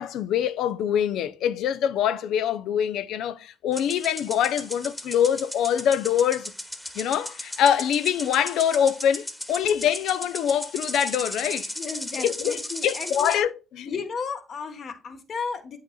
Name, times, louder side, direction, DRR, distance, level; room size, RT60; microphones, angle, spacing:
voice 1, 0.0-6.5 7.0-11.7 12.2-13.5 13.8-13.9, left 9 dB, 85° left, 0.5 m, -24 dB
sound 1, 3.7-13.4, left 1 dB, 10° left, 1.2 m, -36 dB
voice 2, 11.8-13.5 13.8-15.8, left 5 dB, 55° left, 1.2 m, -34 dB
8.2 x 6.4 x 2.3 m
cardioid pair, 90°, 0 cm